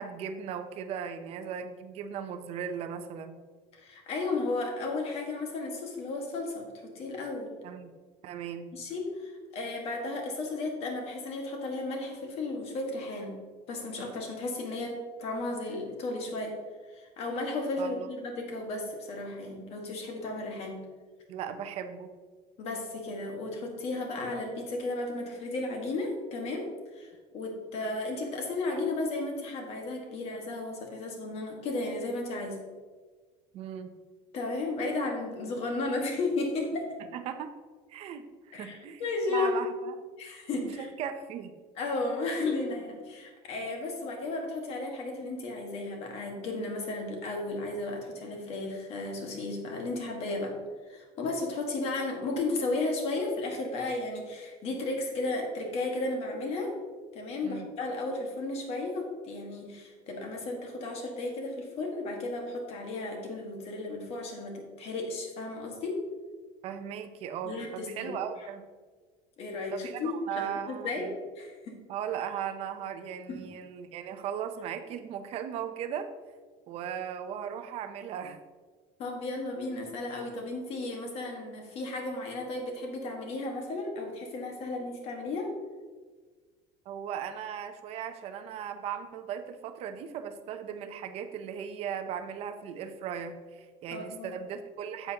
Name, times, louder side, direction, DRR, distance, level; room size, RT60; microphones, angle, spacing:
voice 1, 0.0-3.4 7.6-7.9 8.2-8.7 17.8-18.1 21.3-22.1 33.5-33.9 37.1-37.6 37.9-38.3 38.5-39.9 40.6-41.5 57.4-57.7 66.6-68.6 69.7-71.2 71.9-76.1 76.7-78.4 86.9-95.1, right 8 dB, 40° right, 7 dB, 0.6 m, -37 dB
voice 2, 3.7-6.7 6.9-7.5 8.7-13.4 13.7-16.6 16.9-20.8 22.6-32.6 34.3-36.9 38.5-39.5 40.2-40.9 41.8-50.5 50.9-56.7 57.1-66.0 67.4-68.1 69.4-71.0 71.3-71.8 73.3-73.4 79.0-85.5 93.9-94.3, left 2 dB, 40° left, 2 dB, 1.6 m, -34 dB
9.2 x 7.9 x 2.9 m, 1.5 s
cardioid pair, 180°, 15 cm